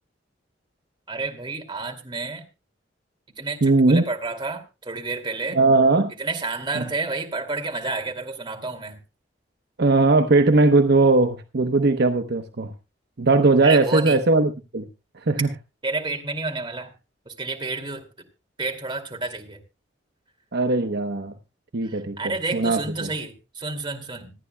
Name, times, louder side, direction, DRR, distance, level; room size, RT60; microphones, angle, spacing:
voice 1, 1.1-2.4 3.4-5.6 6.2-9.0 13.6-14.2 15.8-16.9 17.3-18.1 18.6-19.6 21.8-24.3, right 3 dB, 25° right, 3 dB, 2.4 m, -30 dB
voice 2, 3.6-4.0 5.5-6.1 6.7-6.8 9.8-12.7 13.2-14.9 15.3-15.5 20.5-21.3 21.7-22.2 22.5-23.1, right 3 dB, 60° right, 6 dB, 0.9 m, -19 dB
26.5 x 9.7 x 2.2 m, 0.28 s
head